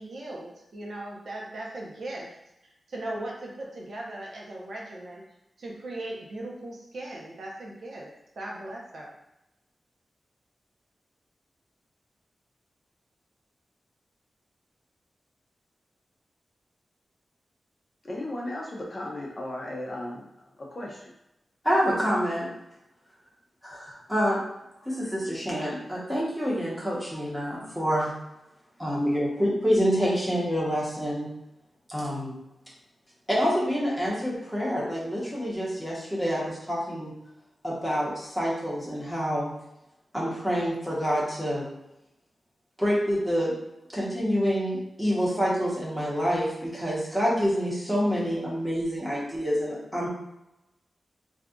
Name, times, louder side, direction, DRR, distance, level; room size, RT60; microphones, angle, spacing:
voice 1, 0.0-2.4 2.9-5.2 5.6-9.1, right 1 dB, 65° right, -3 dB, 0.7 m, -38 dB
voice 2, 18.0-21.1, left 1 dB, 30° left, -2 dB, 0.5 m, -36 dB
voice 3, 21.6-22.5 23.6-24.4 24.8-28.1 28.8-31.3 31.9-32.4 33.3-37.1 37.6-39.5 40.1-41.7 42.8-43.5 43.9-50.1, equal, ahead, -6 dB, 0.9 m, -27 dB
2.7 x 2.3 x 3.6 m, 0.89 s
wide cardioid pair, 160°, 0 cm